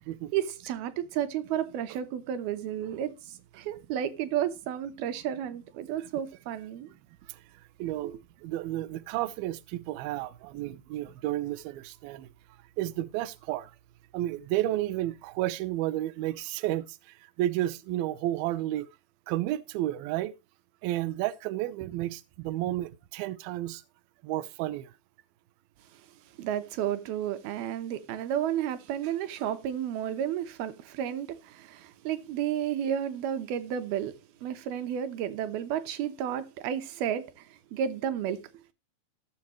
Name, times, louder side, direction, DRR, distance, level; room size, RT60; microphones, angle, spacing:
voice 1, 0.3-6.9 8.0-8.1 26.4-38.5, right 10 dB, 70° right, 2.6 m, -32 dB
voice 2, 7.8-8.1 8.4-12.3 12.8-13.7 14.1-17.0 17.4-18.9 19.3-20.3 20.8-23.8 24.2-24.9, right 14 dB, 90° right, 2.0 m, -31 dB
17.0 x 7.1 x 3.1 m
omnidirectional pair, 5.1 m